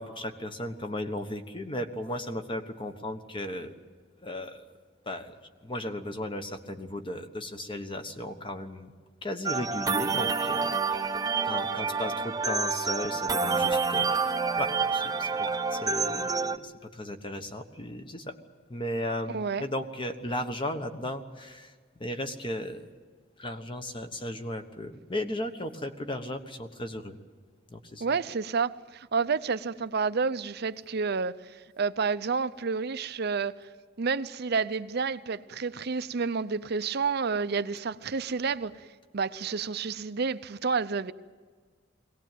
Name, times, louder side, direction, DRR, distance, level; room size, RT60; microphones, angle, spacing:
voice 1, 0.0-3.7 4.2-4.7 5.0-5.3 5.6-8.9 9.2-11.2 11.4-18.4 18.7-22.9 23.4-27.2 27.7-28.0, left 1 dB, 25° left, 1.2 m, -36 dB
sound 1, 9.5-16.6, right 4 dB, 20° right, 0.7 m, -28 dB
voice 2, 19.3-19.6 28.0-33.6 34.0-38.9 39.1-41.1, right 5 dB, 55° right, 0.6 m, -30 dB
22.0 x 18.0 x 9.2 m
head